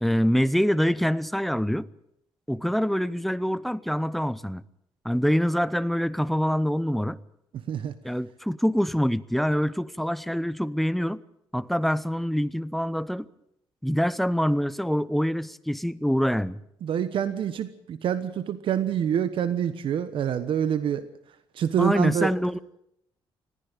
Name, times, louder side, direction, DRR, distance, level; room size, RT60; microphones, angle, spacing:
voice 1, 0.0-1.9 2.5-4.6 5.0-7.2 8.0-11.2 11.5-13.3 13.8-16.6 21.8-22.6, equal, ahead, 16 dB, 0.7 m, -25 dB
voice 2, 16.8-21.1 21.5-22.3, right 9 dB, 65° right, 12 dB, 1.2 m, -26 dB
20.0 x 15.0 x 8.9 m, 0.78 s
cardioid pair, 125°, 9 cm